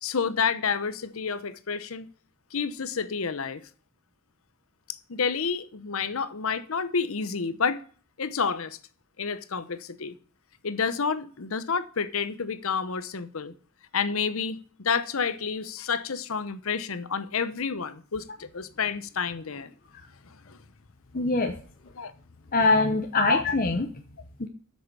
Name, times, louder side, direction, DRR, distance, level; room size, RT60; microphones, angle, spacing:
voice 1, 0.0-2.1 2.5-3.6 5.1-7.8 8.2-8.8 9.2-10.1 10.6-13.5 13.9-18.2 18.5-19.7 20.5-20.6 22.0-22.1 23.3-23.4, left 5 dB, 65° left, 0.8 m, -29 dB
voice 2, 21.1-21.5 22.5-23.9 24.4-24.5, left 3 dB, 40° left, 0.9 m, -23 dB
8.0 x 6.5 x 6.7 m
head